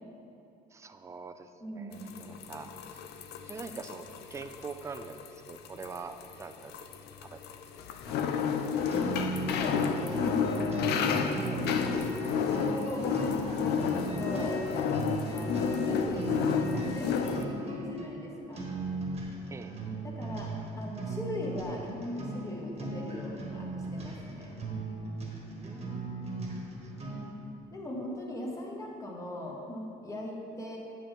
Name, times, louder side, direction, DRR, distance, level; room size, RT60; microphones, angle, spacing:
voice 1, 0.7-3.0 3.5-6.7 7.2-7.4 8.1-8.2 8.7-9.3 19.5-19.7 25.5-26.2, right 4 dB, 15° right, 9 dB, 0.4 m, -44 dB
voice 2, 1.6-2.3 9.0-9.2 9.5-12.0 12.3-14.6 15.3-18.6 20.0-24.5 27.7-30.8, left 1 dB, 20° left, -2 dB, 1.4 m, -39 dB
sound 1, 1.9-17.4, left 7 dB, 75° left, 0.5 m, -31 dB
sound 2, 8.9-27.4, right 2 dB, 35° right, 1.3 m, -37 dB
7.9 x 6.9 x 3.6 m, 2.7 s
cardioid pair, 110°, 17 cm